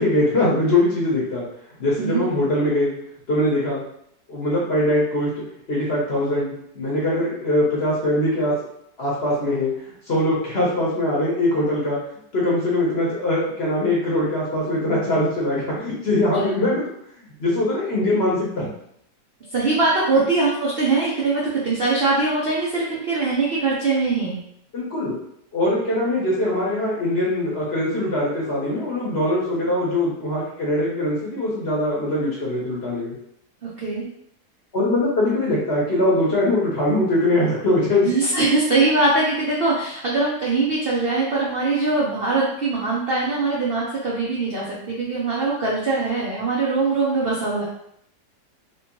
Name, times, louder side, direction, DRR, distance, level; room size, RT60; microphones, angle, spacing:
voice 1, 0.0-1.4 1.8-2.9 3.3-3.8 4.3-5.3 5.7-8.5 9.0-9.7 10.1-12.0 12.3-16.8 17.2-18.7 20.1-20.2 24.7-25.2 25.5-33.1 34.7-38.1, left 1 dB, 45° left, -5 dB, 0.9 m, -22 dB
voice 2, 19.5-24.4 33.6-34.1 38.0-47.6, right 3 dB, 80° right, -5 dB, 0.5 m, -22 dB
3.2 x 3.0 x 2.9 m, 0.73 s
omnidirectional pair, 2.0 m